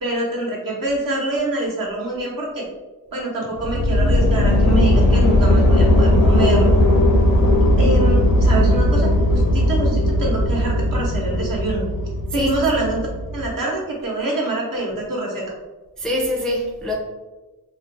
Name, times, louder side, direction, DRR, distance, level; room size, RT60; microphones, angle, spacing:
voice 1, 0.0-2.7 3.1-6.7 7.8-11.8 12.3-13.1 13.3-15.4, right 2 dB, 60° right, 0.8 m, -25 dB
sound 1, 3.6-13.5, left 1 dB, 65° left, 0.5 m, -17 dB
voice 2, 16.0-16.9, left 1 dB, ahead, 0.4 m, -24 dB
2.4 x 2.1 x 2.6 m
cardioid pair, 75°, 37 cm